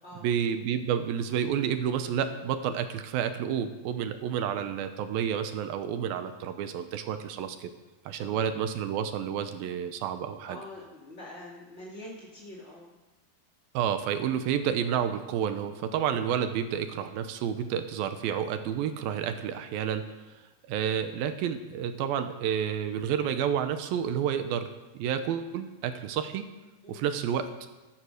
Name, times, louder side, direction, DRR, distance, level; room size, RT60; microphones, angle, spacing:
voice 1, 0.2-7.7 8.1-10.6 13.7-20.1 20.7-26.4 26.9-27.5, right 8 dB, 75° right, 9 dB, 2.4 m, -30 dB
voice 2, 10.5-12.9 26.8-27.1, left 1 dB, 30° left, -4 dB, 1.2 m, -45 dB
14.5 x 13.0 x 6.4 m, 1.1 s
omnidirectional pair, 4.7 m